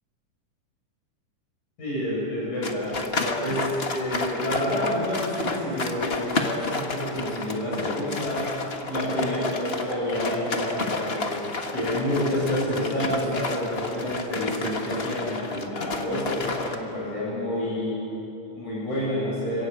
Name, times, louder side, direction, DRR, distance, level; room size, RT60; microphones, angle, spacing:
voice 1, 1.8-8.4 8.9-11.4 11.7-18.0 18.5-19.7, left 1 dB, 70° left, -7 dB, 9.2 m, -28 dB
Bleach Thick Liquid, 2.6-16.8, left 3 dB, 40° left, 0.8 m, -31 dB
27.0 x 15.5 x 8.7 m, 3.0 s
omnidirectional pair, 3.5 m